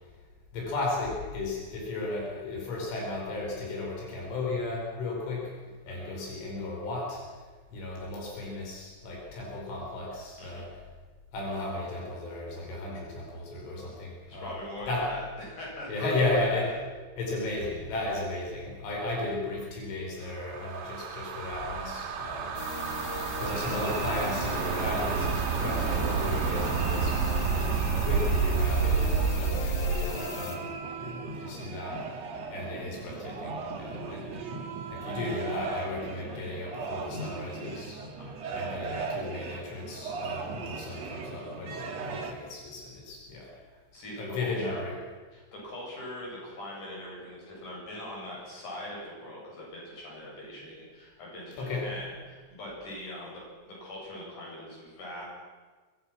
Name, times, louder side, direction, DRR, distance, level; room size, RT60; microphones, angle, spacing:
voice 1, 0.5-5.5 5.9-7.3 7.7-10.7 11.3-14.6 14.9-15.1 15.9-16.7 17.2-22.5 23.4-27.2 28.0-32.2 32.5-34.3 34.9-38.0 38.5-43.5 44.2-45.0 51.6-51.9, left 2 dB, 90° left, -2 dB, 7.3 m, -34 dB
voice 2, 14.3-16.4 38.2-38.7 43.6-44.8 45.3-53.4 53.7-55.3, left 1 dB, 40° left, -4 dB, 9.4 m, -42 dB
sound 1, 20.3-30.1, right 5 dB, 70° right, 3.9 m, -29 dB
sound 2, 22.5-30.5, left 5 dB, 70° left, 4.3 m, -39 dB
sound 3, 23.5-42.3, right 4 dB, 50° right, 2.3 m, -39 dB
24.0 x 21.5 x 6.2 m, 1.4 s
omnidirectional pair, 5.4 m